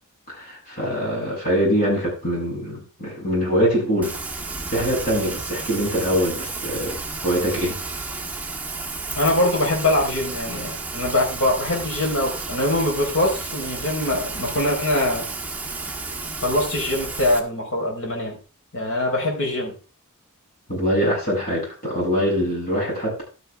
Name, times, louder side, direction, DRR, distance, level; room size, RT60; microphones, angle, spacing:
voice 1, 0.3-4.2 4.7-7.8 20.7-23.2, equal, 45° left, -4 dB, 7.4 m, -23 dB
Rain, 4.0-17.4, right 3 dB, 5° right, 1.5 m, -32 dB
voice 2, 9.2-15.3 16.4-18.4 18.7-19.7, left 1 dB, 65° left, 0 dB, 4.3 m, -23 dB
12.0 x 9.2 x 3.5 m, 0.36 s
head